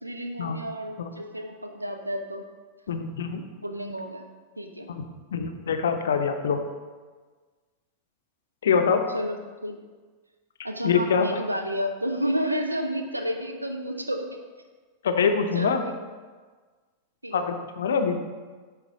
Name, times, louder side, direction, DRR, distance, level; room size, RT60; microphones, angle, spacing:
voice 1, 0.0-2.5 3.6-4.3 4.6-4.9 9.1-9.8 10.6-14.4 15.5-16.1 17.2-17.4, equal, 85° right, 5 dB, 0.5 m, -31 dB
voice 2, 2.9-3.5 4.9-5.0 5.3-6.6 8.6-9.0 10.8-11.3 15.0-15.8 17.3-18.2, left 6 dB, 65° left, 6 dB, 0.5 m, -24 dB
8.9 x 3.2 x 3.6 m, 1.4 s
figure-of-eight pair, 90°, 0 cm